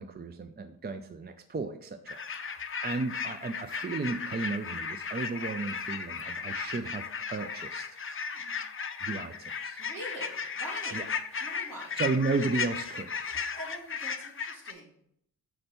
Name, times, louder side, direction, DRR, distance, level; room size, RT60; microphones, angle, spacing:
voice 1, 0.0-7.9 9.0-9.8 10.9-11.1 12.0-13.2, right 3 dB, 30° right, 9 dB, 0.4 m, -34 dB
sound 1, 2.1-14.7, left 6 dB, 35° left, 0.5 m, -36 dB
voice 2, 8.3-8.7 9.8-11.0 11.4-12.0 13.2-15.0, equal, 60° right, -4 dB, 2.8 m, -44 dB
6.6 x 4.4 x 4.3 m, 0.71 s
wide cardioid pair, 120°, 37 cm